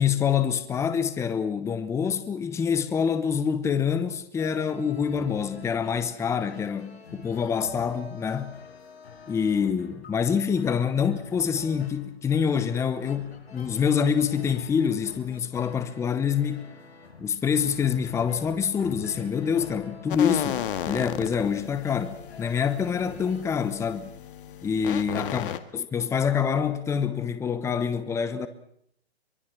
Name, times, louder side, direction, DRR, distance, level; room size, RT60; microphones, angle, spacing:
voice 1, 0.0-8.5 9.3-16.6 17.2-24.2 24.6-28.5, left 7 dB, 10° left, 1.0 m, -26 dB
sound 1, 4.4-23.4, left 5 dB, 75° left, 6.4 m, -47 dB
sound 2, 20.1-25.6, left 10 dB, 55° left, 1.8 m, -34 dB
23.5 x 23.5 x 6.2 m
hypercardioid pair, 140°, 32 cm